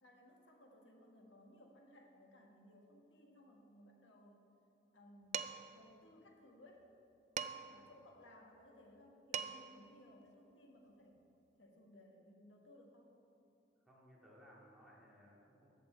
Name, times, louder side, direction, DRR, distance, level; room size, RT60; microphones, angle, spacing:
voice 1, 0.0-4.4 4.9-6.9 7.5-11.2 11.6-13.1, left 1 dB, 85° left, 1 dB, 1.5 m, -62 dB
Dishes pots and pans, 5.3-5.8 7.4-7.8 9.0-9.1 9.3-9.8, right 8 dB, 40° right, 0.3 m, -42 dB
voice 2, 7.7-8.0 13.8-15.7, equal, ahead, -6 dB, 2.1 m, -63 dB
14.0 x 7.8 x 4.5 m, 2.8 s
head